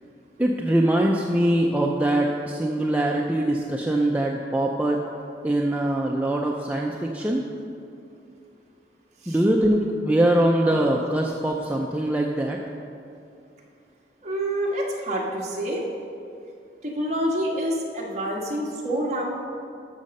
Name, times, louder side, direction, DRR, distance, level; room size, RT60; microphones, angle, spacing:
voice 1, 0.4-5.0 5.4-7.4 9.3-12.6, right 1 dB, 10° right, -1 dB, 0.5 m, -22 dB
voice 2, 14.2-15.9 16.8-19.3, right 1 dB, 40° right, -3 dB, 1.6 m, -27 dB
13.0 x 6.5 x 5.4 m, 2.5 s
head